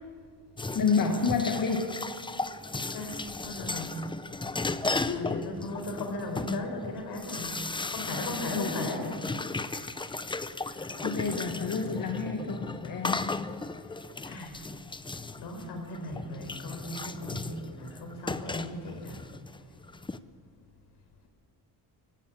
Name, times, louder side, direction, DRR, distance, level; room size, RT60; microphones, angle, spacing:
sound 1, 0.6-20.2, left 3 dB, 15° left, 0.6 m, -35 dB
voice 1, 0.7-2.0 5.0-5.7 8.5-9.1 9.6-9.9 10.7-13.3, left 5 dB, 55° left, 3 dB, 1.9 m, -30 dB
voice 2, 2.8-3.1 3.4-3.9 4.5-7.5 7.9-9.0 14.2-14.6 15.4-19.2, left 2 dB, 85° left, 4 dB, 4.9 m, -37 dB
24.0 x 15.5 x 8.6 m, 2.2 s
cardioid pair, 135°, 39 cm